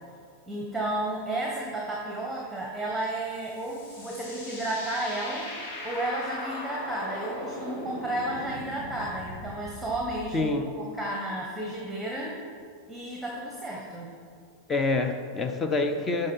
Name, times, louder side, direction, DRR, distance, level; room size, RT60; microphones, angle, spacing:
voice 1, 0.5-5.5 5.8-12.4 12.8-14.2, right 1 dB, 5° right, -3 dB, 1.1 m, -32 dB
sound 1, 3.2-10.4, left 1 dB, 50° left, 2.1 m, -39 dB
voice 2, 10.3-10.7 14.7-16.3, left 3 dB, 20° left, 6 dB, 0.6 m, -26 dB
11.5 x 3.9 x 5.5 m, 2.2 s
figure-of-eight pair, 90°, 0 cm